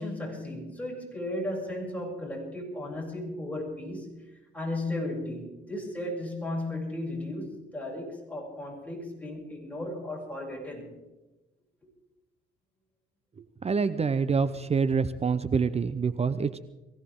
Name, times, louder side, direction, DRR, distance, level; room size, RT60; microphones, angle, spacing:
voice 1, 0.0-10.9, left 1 dB, 5° left, -2 dB, 7.7 m, -35 dB
voice 2, 13.4-16.6, right 5 dB, 30° right, 13 dB, 0.7 m, -26 dB
23.0 x 16.5 x 3.8 m, 1.1 s
cardioid pair, 90°, 20 cm